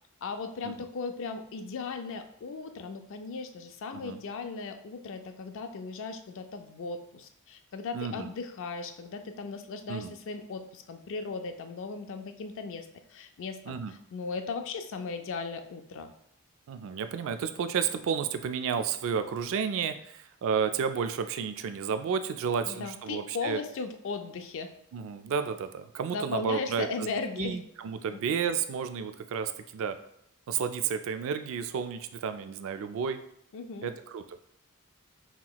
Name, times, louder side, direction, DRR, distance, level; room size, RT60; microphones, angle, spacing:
voice 1, 0.2-16.1 22.7-24.7 26.1-27.6 28.1-28.2 33.5-33.9, left 4 dB, 60° left, 7 dB, 0.4 m, -37 dB
voice 2, 7.9-8.3 9.9-10.1 13.7-13.9 16.7-23.6 24.9-26.9 27.4-30.0 30.5-33.2 33.8-34.4, right 6 dB, 65° right, 10 dB, 0.3 m, -31 dB
5.7 x 2.9 x 2.3 m, 0.70 s
head